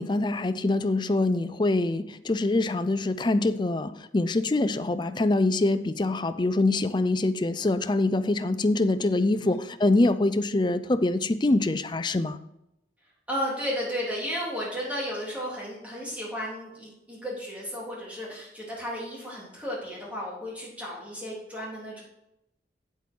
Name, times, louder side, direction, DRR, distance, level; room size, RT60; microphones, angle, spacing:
voice 1, 0.0-12.4, left 2 dB, 25° left, 11 dB, 0.4 m, -24 dB
voice 2, 9.0-9.6 13.3-22.0, equal, 10° right, -5 dB, 3.4 m, -34 dB
8.5 x 8.1 x 4.5 m, 0.83 s
head